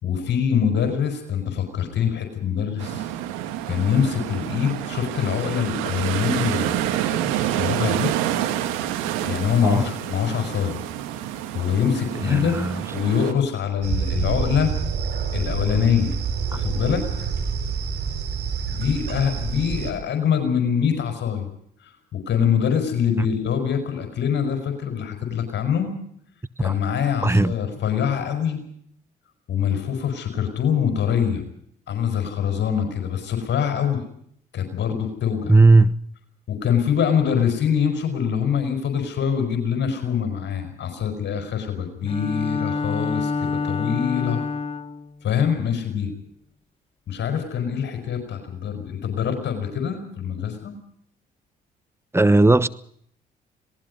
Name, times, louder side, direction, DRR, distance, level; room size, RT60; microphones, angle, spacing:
voice 1, 0.0-3.1 3.7-6.8 7.3-8.1 9.2-10.8 11.5-14.7 15.3-16.1 16.5-17.3 18.7-21.4 21.8-26.0 26.6-28.6 29.5-31.4 31.9-34.0 34.5-35.5 36.5-44.4 45.2-46.1 47.1-50.7, left 8 dB, 60° left, 5.1 m, -24 dB
sound 1, 2.8-13.3, right 11 dB, 80° right, 2.2 m, -28 dB
voice 2, 12.2-12.8 26.6-26.7 27.2-27.5 35.5-36.0 52.1-52.7, right 2 dB, 10° right, 1.1 m, -16 dB
sound 2, 13.8-19.9, right 6 dB, 55° right, 5.6 m, -27 dB
Bowed string instrument, 42.1-45.1, left 4 dB, 25° left, 1.3 m, -27 dB
26.5 x 19.0 x 5.4 m
hypercardioid pair, 55°, 20 cm